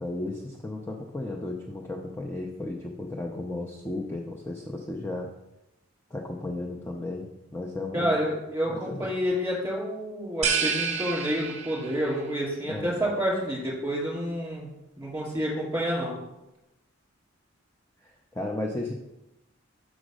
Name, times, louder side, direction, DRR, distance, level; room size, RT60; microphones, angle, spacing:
voice 1, 0.0-5.3 6.1-8.2 8.7-9.1 12.6-13.0 18.0-18.9, left 2 dB, 10° left, 0 dB, 0.5 m, -34 dB
voice 2, 7.9-14.7 15.0-16.2, equal, 15° right, -5 dB, 3.2 m, -29 dB
sound 1, 10.4-12.1, right 6 dB, 35° right, 0.9 m, -29 dB
6.2 x 5.0 x 6.3 m, 0.94 s
head